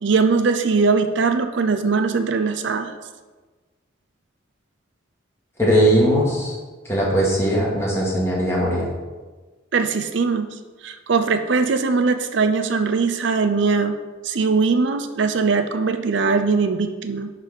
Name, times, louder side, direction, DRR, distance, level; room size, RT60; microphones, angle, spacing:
voice 1, 0.0-2.9 9.7-10.5 10.8-14.0 14.2-17.3, right 4 dB, 65° right, 8 dB, 0.5 m, -20 dB
voice 2, 5.6-6.5 6.8-8.9, equal, 15° left, -5 dB, 2.2 m, -19 dB
10.5 x 4.1 x 5.3 m, 1.3 s
head